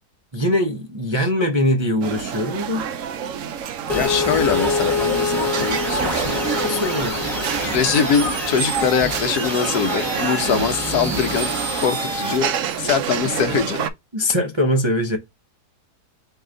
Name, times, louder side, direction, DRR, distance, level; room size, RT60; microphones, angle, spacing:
voice 1, 0.3-2.9 6.6-7.3 14.1-15.2, left 1 dB, 25° right, 0.6 m, -22 dB
sound 1, 2.0-13.9, right 8 dB, 65° right, 0.9 m, -28 dB
voice 2, 3.9-6.5 7.6-12.5 12.8-13.8, left 7 dB, 75° left, 1.3 m, -23 dB
sound 2, 3.9-12.4, left 2 dB, ahead, 1.4 m, -25 dB
4.7 x 2.7 x 3.7 m
omnidirectional pair, 1.7 m